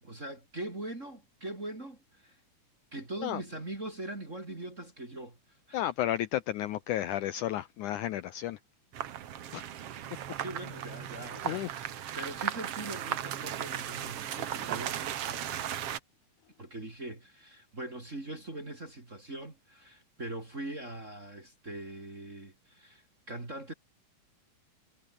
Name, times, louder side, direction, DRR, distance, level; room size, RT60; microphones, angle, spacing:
voice 1, 0.0-2.4 2.9-5.4 5.7-5.8 10.3-15.4 16.6-23.7, right 2 dB, 20° right, 3.2 m, -42 dB
voice 2, 5.7-8.6 9.5-9.6 11.4-11.7, left 13 dB, 80° left, 1.9 m, -32 dB
sound 1, 8.9-16.0, right 10 dB, 60° right, 1.7 m, -36 dB
omnidirectional pair, 4.3 m